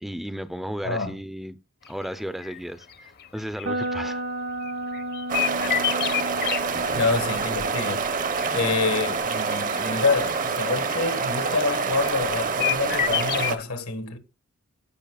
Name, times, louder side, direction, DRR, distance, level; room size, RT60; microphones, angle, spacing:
voice 1, 0.0-1.6 1.9-4.2 6.7-7.1, equal, ahead, 0.4 m, -35 dB
sound 1, 1.9-2.1 2.4-2.6 2.9-4.0 4.6-6.6 7.3-10.4 10.9-12.3 12.6-13.6, left 11 dB, 45° left, 0.7 m, -29 dB
sound 2, 3.6-11.6, right 1 dB, 80° right, 2.1 m, -35 dB
sound 3, 5.3-13.6, right 5 dB, 40° right, 0.7 m, -27 dB
voice 2, 6.9-8.1 8.5-14.2, left 4 dB, 85° left, 1.4 m, -27 dB
15.5 x 5.3 x 2.3 m
head